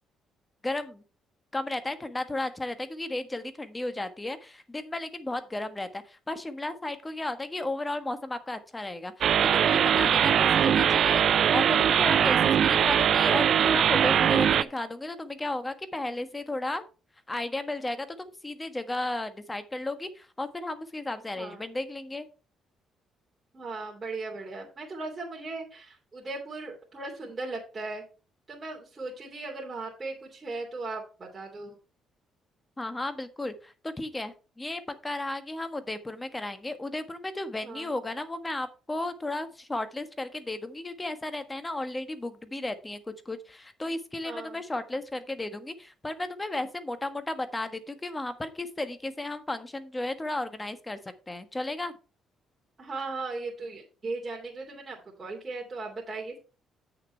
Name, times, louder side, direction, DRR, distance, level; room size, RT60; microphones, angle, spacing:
voice 1, 0.6-1.0 1.5-16.8 17.3-22.3 32.8-51.0 51.3-51.9, left 2 dB, 15° left, 10 dB, 1.4 m, -34 dB
sound 1, 9.2-14.6, right 9 dB, 60° right, 0.5 m, -21 dB
voice 2, 23.5-28.0 28.5-31.8 37.6-37.9 44.2-44.6 52.8-56.4, right 3 dB, 30° right, -2 dB, 2.9 m, -37 dB
8.4 x 6.8 x 4.5 m, 0.34 s
cardioid pair, 80°, 0 cm